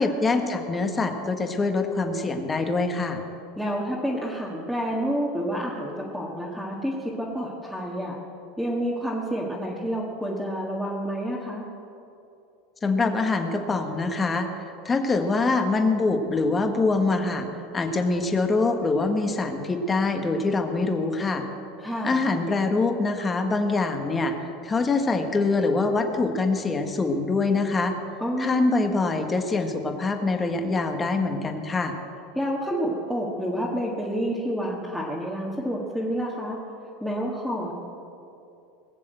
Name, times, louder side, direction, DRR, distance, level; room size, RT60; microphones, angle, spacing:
voice 1, 0.0-3.2 12.8-14.5 14.8-17.5 17.7-21.4 22.0-24.3 24.6-27.9 28.4-32.0, left 3 dB, 20° left, 5 dB, 1.5 m, -24 dB
voice 2, 3.6-8.2 8.6-11.6 21.8-22.2 28.2-28.7 32.3-36.6 37.0-37.7, equal, ahead, -6 dB, 1.9 m, -29 dB
19.5 x 7.5 x 7.8 m, 2.7 s
supercardioid pair, 120°, 0 cm